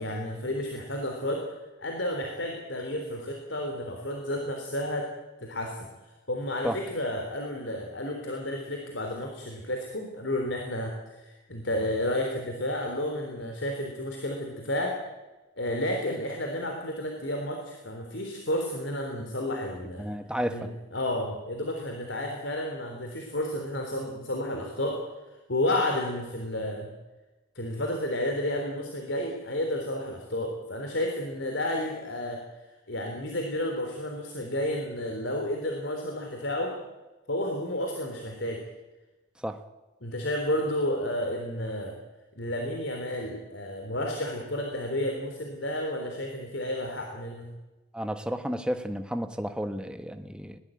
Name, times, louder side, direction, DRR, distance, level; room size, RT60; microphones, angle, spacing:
voice 1, 0.0-1.5 1.8-5.1 5.4-5.9 6.3-15.0 15.6-20.1 20.5-25.0 25.3-26.9 27.6-32.4 32.9-36.7 37.3-38.6 40.0-41.9 42.4-47.5, left 1 dB, 70° left, 3 dB, 3.5 m, -31 dB
voice 2, 20.0-20.7 39.4-39.6 47.9-50.6, equal, 5° right, 8 dB, 1.3 m, -32 dB
21.0 x 18.5 x 9.1 m, 1.1 s
head